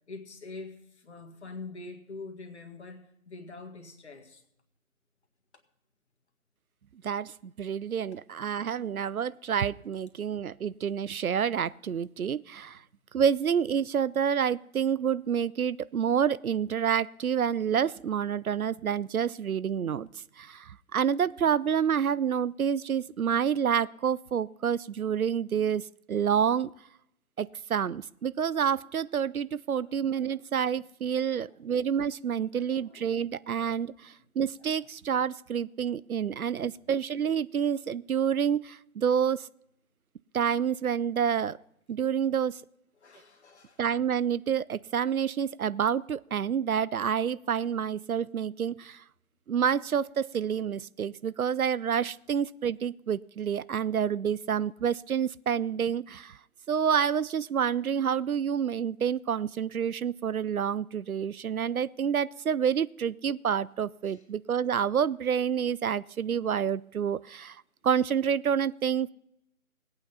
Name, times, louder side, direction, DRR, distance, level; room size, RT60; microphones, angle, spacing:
voice 1, 0.1-4.4 12.7-12.8 29.7-30.8 31.1-31.6 32.4-33.3 34.0-34.2 34.5-34.9 36.5-36.8 42.9-43.9 64.0-64.3, left 3 dB, 50° left, 6 dB, 1.8 m, -46 dB
voice 2, 7.0-12.8 13.1-20.1 20.4-25.8 26.1-26.7 27.4-39.5 40.3-41.6 41.9-42.6 43.8-49.0 49.5-56.4 56.7-69.1, right 8 dB, 75° right, 20 dB, 0.5 m, -28 dB
17.5 x 8.8 x 5.6 m, 0.79 s
figure-of-eight pair, 150°, 43 cm